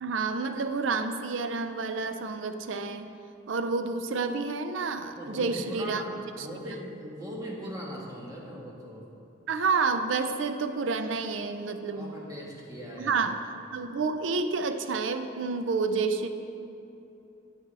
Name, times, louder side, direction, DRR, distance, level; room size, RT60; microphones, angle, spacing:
voice 1, 0.0-3.1 3.5-6.0 6.4-6.5 9.5-12.1 13.0-13.4 13.7-16.3, right 4 dB, 70° right, 9 dB, 0.5 m, -29 dB
voice 2, 5.2-6.1 6.4-9.0 12.0-13.2, equal, 20° right, -4 dB, 1.5 m, -39 dB
9.1 x 8.9 x 3.4 m, 2.8 s
head